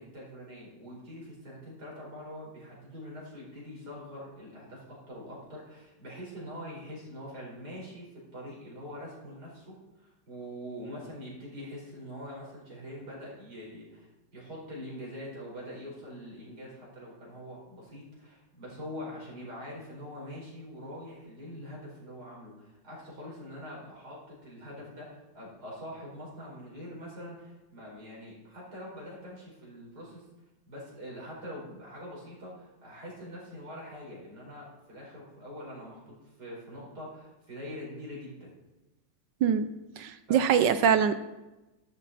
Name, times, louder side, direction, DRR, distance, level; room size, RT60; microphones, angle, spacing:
voice 1, 0.0-9.7 10.0-30.3 30.7-38.5 40.3-40.5, equal, 55° right, -5 dB, 5.4 m, -44 dB
voice 2, 40.0-41.1, right 8 dB, 75° right, 11 dB, 1.3 m, -23 dB
12.5 x 12.0 x 4.2 m, 1.0 s
omnidirectional pair, 2.1 m